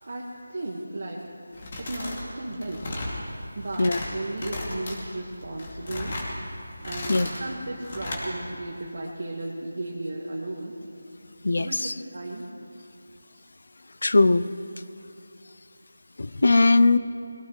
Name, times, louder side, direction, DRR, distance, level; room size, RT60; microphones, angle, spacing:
voice 1, 0.0-1.2 1.8-2.8 3.5-6.2 6.8-10.8 11.5-12.5, right 2 dB, 55° right, -3 dB, 1.6 m, -34 dB
sound 1, 1.5-2.2 2.5-3.2 3.6-4.1 4.4-5.0 5.4-6.3 6.7-7.4 7.8-8.2, left 2 dB, 35° left, 2.6 m, -35 dB
voice 2, 11.4-11.9 14.0-14.5 16.2-17.0, left 3 dB, 60° left, 13 dB, 0.6 m, -19 dB
22.0 x 17.5 x 3.2 m, 2.6 s
figure-of-eight pair, 170°, 0 cm